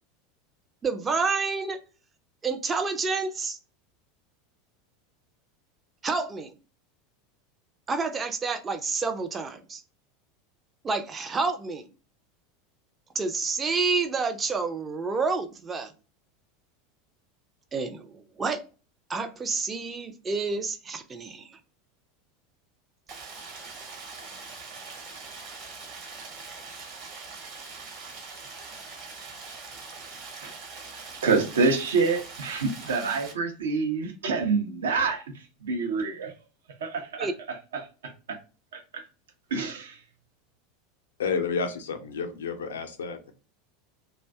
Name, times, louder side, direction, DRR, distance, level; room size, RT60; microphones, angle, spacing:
voice 1, 0.8-1.8 2.4-3.6 6.0-6.5 7.9-9.8 10.8-11.9 13.1-15.9 17.7-18.6 19.1-21.6 37.2-37.3, right 4 dB, 20° right, 0.5 m, -29 dB
Stream, 23.1-33.3, right 4 dB, 50° right, 1.1 m, -42 dB
voice 2, 31.2-35.2 35.6-36.3 36.8-37.3 37.7-37.9 38.3-38.4 38.7-39.0 39.5-40.0, right 4 dB, 70° right, 0.6 m, -27 dB
voice 3, 41.2-43.3, left 5 dB, 70° left, 0.5 m, -30 dB
2.6 x 2.2 x 3.3 m
figure-of-eight pair, 80°, 0 cm